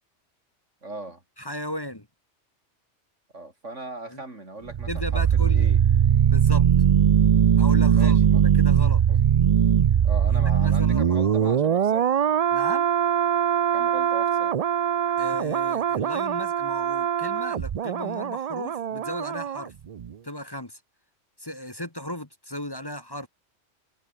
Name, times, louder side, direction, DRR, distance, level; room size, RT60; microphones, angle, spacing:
voice 1, 0.8-1.2 3.3-5.8 7.9-8.4 9.1-9.2 10.0-12.1 13.7-14.6, right 2 dB, 90° right, 5.5 m, -39 dB
voice 2, 1.4-2.1 4.1-4.2 4.9-5.7 6.2-6.7 7.6-9.0 10.3-11.3 12.5-12.9 15.2-19.7 20.2-20.8 21.4-23.3, left 1 dB, 20° left, 1.7 m, -36 dB
sound 1, 4.7-19.6 19.9-20.1, right 8 dB, 55° right, 0.4 m, -21 dB
omnidirectional pair, 1.2 m